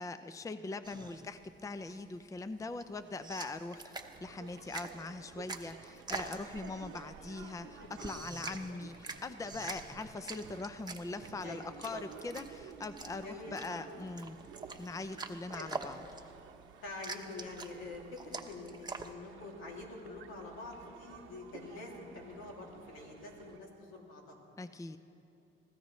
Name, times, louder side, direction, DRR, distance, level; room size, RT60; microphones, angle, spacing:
voice 1, 0.0-3.9 4.2-14.4 14.8-16.0 24.6-25.0, left 3 dB, 15° left, 11 dB, 0.5 m, -42 dB
sound 1, 0.8-19.1, right 3 dB, 20° right, 1.0 m, -46 dB
sound 2, 3.9-23.6, right 7 dB, 90° right, 0.9 m, -54 dB
Laughter, 7.6-12.1, left 6 dB, 60° left, 0.8 m, -60 dB
voice 2, 11.4-12.0 13.2-13.8 15.5-15.7 16.8-24.4, left 2 dB, 90° left, -1 dB, 2.6 m, -46 dB
24.0 x 16.0 x 3.2 m, 2.9 s
cardioid pair, 90°, 20 cm